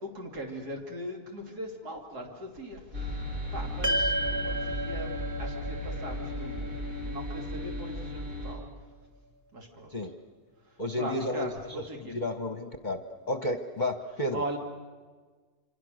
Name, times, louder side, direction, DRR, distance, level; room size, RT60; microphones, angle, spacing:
voice 1, 0.0-3.2 3.5-8.7 9.5-10.0 10.6-12.1 14.3-14.6, right 1 dB, 85° right, 1 dB, 3.3 m, -40 dB
sound 1, 2.9-8.5, left 1 dB, 60° right, 4.5 m, -35 dB
sound 2, 3.8-8.3, right 1 dB, 10° right, 1.4 m, -33 dB
voice 2, 10.8-11.8 12.1-14.4, left 1 dB, 35° left, 7 dB, 1.0 m, -32 dB
27.5 x 26.5 x 6.4 m, 1.4 s
omnidirectional pair, 1.6 m